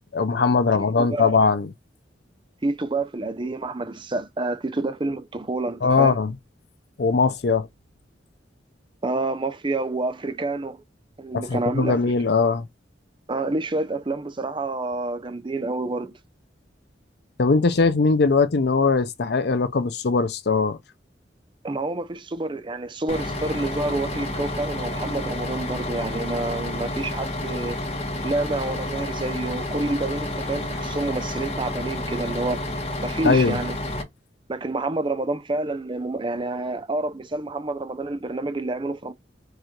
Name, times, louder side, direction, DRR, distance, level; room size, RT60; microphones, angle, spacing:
voice 1, 0.1-1.7 5.8-6.3 7.0-7.7 11.3-12.7 17.4-20.8 33.2-33.6, left 4 dB, 60° left, 0.6 m, -20 dB
voice 2, 0.7-1.3 2.6-6.2 9.0-10.8 11.2-12.0 13.3-16.1 21.6-27.8 28.2-32.6 33.0-33.8 34.5-39.1, right 2 dB, 30° right, 0.6 m, -28 dB
Bus, 23.1-34.0, left 1 dB, 35° left, 1.1 m, -30 dB
4.8 x 2.5 x 4.4 m
head